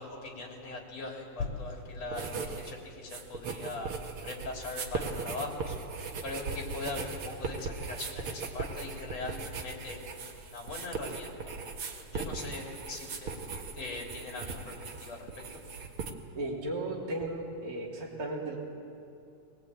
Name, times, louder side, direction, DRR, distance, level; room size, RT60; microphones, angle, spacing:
voice 1, 0.0-3.9 4.2-5.7 6.2-11.4 12.1-13.3 13.8-15.5, left 3 dB, 55° left, 0 dB, 4.6 m, -40 dB
sound 1, 2.1-2.7 3.0-16.1, right 4 dB, 50° right, 2.0 m, -39 dB
voice 2, 16.3-18.6, right 2 dB, 30° right, -3 dB, 3.6 m, -35 dB
21.5 x 20.0 x 8.7 m, 2.7 s
omnidirectional pair, 3.5 m